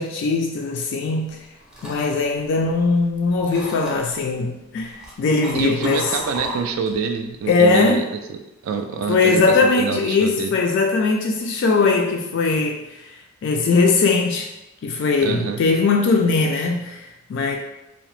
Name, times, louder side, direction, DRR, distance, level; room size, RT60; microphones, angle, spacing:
voice 1, 0.0-1.4 1.8-6.1 7.5-8.0 9.1-14.5 14.8-17.6, left 4 dB, 60° left, 1 dB, 0.3 m, -20 dB
sound 1, 1.3-3.1 3.5-4.2 4.8-7.0 7.4-7.7, equal, 5° right, 0.6 m, -35 dB
voice 2, 5.5-8.0 8.3-10.5 15.2-15.6, right 5 dB, 85° right, 6 dB, 0.3 m, -26 dB
2.8 x 2.0 x 3.1 m, 0.93 s
head